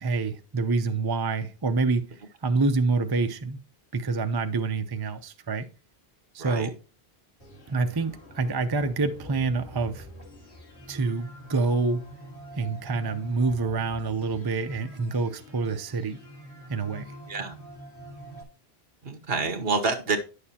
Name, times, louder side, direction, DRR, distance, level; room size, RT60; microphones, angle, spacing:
voice 1, 0.0-2.0 2.4-3.6 3.9-5.7 6.3-6.7 7.7-10.1 10.9-12.0 12.6-16.2 16.7-17.1, right 3 dB, 25° right, 0.6 m, -27 dB
sound 1, 7.4-18.4, equal, 90° left, 2.3 m, -45 dB
voice 2, 19.0-20.2, right 4 dB, 65° right, 1.4 m, -27 dB
10.0 x 6.6 x 2.8 m
omnidirectional pair, 1.1 m